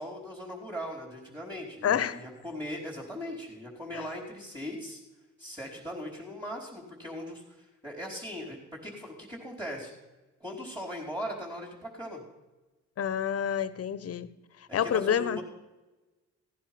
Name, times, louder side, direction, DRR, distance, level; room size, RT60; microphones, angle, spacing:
voice 1, 0.0-5.0 5.4-9.9 10.4-12.2 14.7-15.4, equal, 15° right, -3 dB, 4.5 m, -39 dB
voice 2, 1.8-2.2 3.9-4.0 13.0-14.3 14.7-15.4, left 8 dB, 50° left, 16 dB, 1.0 m, -28 dB
16.5 x 10.0 x 6.1 m, 1.1 s
cardioid pair, 90°, 30 cm